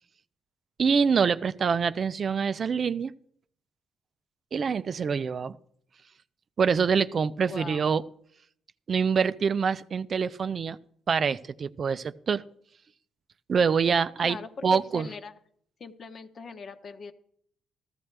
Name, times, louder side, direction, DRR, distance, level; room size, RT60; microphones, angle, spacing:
voice 1, 0.8-3.1 4.5-5.6 6.6-8.0 8.9-10.8 11.1-12.4 13.5-14.4 14.6-15.1, right 6 dB, 45° right, 14 dB, 0.4 m, -25 dB
voice 2, 7.4-7.9 14.2-15.3 15.8-17.1, left 4 dB, 50° left, 8 dB, 1.0 m, -41 dB
14.5 x 13.0 x 3.3 m, 0.66 s
cardioid pair, 90°, 0 cm